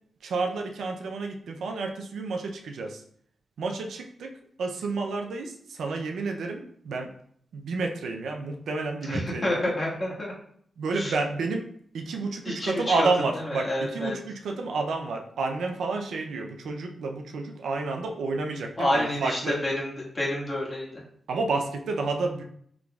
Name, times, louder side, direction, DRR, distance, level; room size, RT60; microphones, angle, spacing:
voice 1, 0.2-3.0 3.6-4.3 4.6-7.1 7.5-9.7 10.8-11.7 11.9-19.6 21.3-22.4, right 3 dB, 80° right, 3 dB, 0.4 m, -30 dB
voice 2, 9.0-10.3 10.9-11.1 12.4-13.1 13.3-14.2 18.8-20.9, left 1 dB, 45° left, -4 dB, 1.5 m, -28 dB
4.9 x 3.0 x 2.3 m, 0.65 s
supercardioid pair, 45°, 0 cm